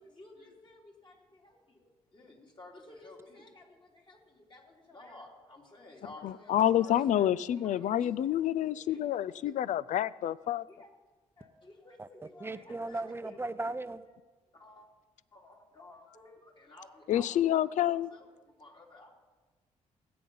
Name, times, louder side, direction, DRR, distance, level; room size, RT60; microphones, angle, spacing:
voice 1, 0.0-7.3 7.6-9.6 10.7-10.9 11.4-13.4 14.5-14.9 15.3-19.1, left 2 dB, 35° left, -1 dB, 3.3 m, -54 dB
voice 2, 6.2-10.6 17.1-18.1, left 11 dB, 70° left, 20 dB, 0.4 m, -28 dB
voice 3, 12.4-14.0, right 2 dB, 15° right, 13 dB, 0.7 m, -36 dB
16.5 x 8.6 x 5.5 m, 1.3 s
cardioid pair, 70°, 13 cm